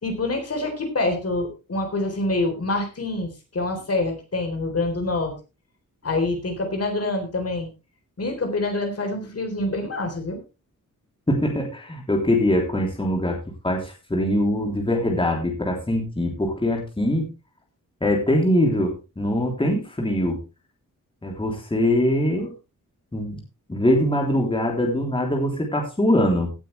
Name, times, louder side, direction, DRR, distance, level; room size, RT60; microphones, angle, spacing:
voice 1, 0.0-5.3 6.0-7.7 8.2-10.4, left 2 dB, 45° left, 4 dB, 3.9 m, -26 dB
voice 2, 11.3-17.3 18.0-20.4 21.2-22.5 23.1-23.4 23.7-26.5, left 1 dB, 15° left, 0 dB, 3.3 m, -22 dB
17.0 x 9.0 x 3.4 m, 0.28 s
wide cardioid pair, 140°, 33 cm